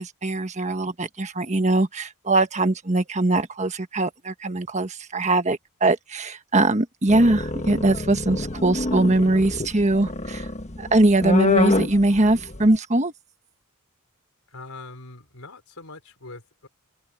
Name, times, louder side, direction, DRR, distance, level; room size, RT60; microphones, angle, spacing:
voice 1, 0.0-10.5 10.8-13.1, right 2 dB, 30° right, 1.4 m, -21 dB
sound 1, 7.1-12.8, left 2 dB, 30° left, 1.3 m, -26 dB
voice 2, 14.5-16.7, left 3 dB, 75° left, 4.2 m, -42 dB
open air
head